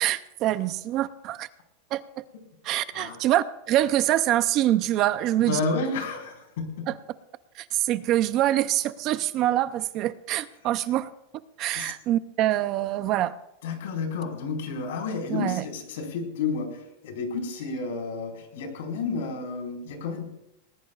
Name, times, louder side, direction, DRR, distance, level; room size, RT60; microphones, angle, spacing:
voice 1, 0.0-1.5 1.9-2.0 2.6-5.6 6.9-7.0 7.6-11.1 11.6-13.3 15.3-15.6, right 13 dB, 30° right, 14 dB, 0.5 m, -25 dB
voice 2, 5.4-6.6 11.7-11.9 13.6-20.3, left 4 dB, 70° left, 2 dB, 4.6 m, -31 dB
20.0 x 19.5 x 2.4 m, 0.86 s
supercardioid pair, 170°, 0 cm